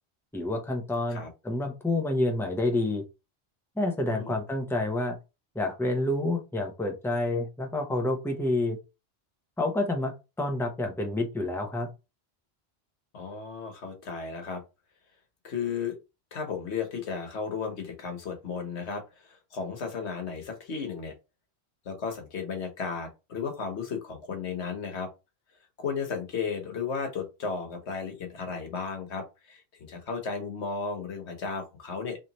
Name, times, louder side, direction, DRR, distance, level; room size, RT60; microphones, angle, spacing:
voice 1, 0.3-3.0 3.8-5.1 5.5-8.8 9.6-10.1 10.4-11.9, left 2 dB, 5° left, 0.8 m, -28 dB
voice 2, 13.1-14.6 15.4-16.0 16.3-21.1 21.8-25.1 25.8-32.2, left 5 dB, 85° left, 1.3 m, -34 dB
3.2 x 2.9 x 4.0 m
omnidirectional pair, 1.1 m